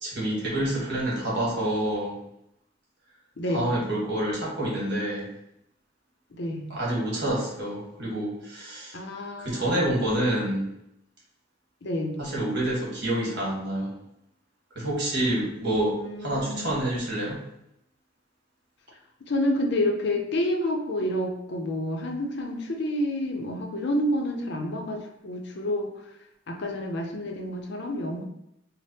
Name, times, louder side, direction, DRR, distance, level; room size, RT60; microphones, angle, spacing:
voice 1, 0.0-2.1 3.5-5.3 6.7-9.0 9.4-10.6 12.2-13.9 14.7-17.4, right 1 dB, 60° right, -5 dB, 1.4 m, -27 dB
voice 2, 8.9-9.7 11.8-12.2 15.9-16.8 19.2-25.9 26.5-28.2, left 1 dB, 55° left, 2 dB, 0.6 m, -29 dB
3.4 x 2.1 x 4.0 m, 0.80 s
head